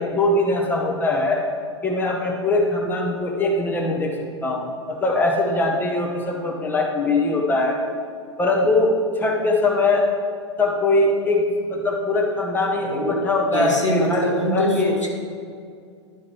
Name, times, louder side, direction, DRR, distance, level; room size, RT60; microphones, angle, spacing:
voice 1, 0.0-1.4 1.8-4.1 4.4-7.8 8.4-10.1 10.6-11.4 11.7-14.9, left 2 dB, 10° left, 0 dB, 1.1 m, -21 dB
voice 2, 12.8-13.2 13.5-15.1, equal, 85° left, -1 dB, 1.4 m, -23 dB
11.0 x 4.5 x 4.5 m, 2.2 s
figure-of-eight pair, 95°, 15 cm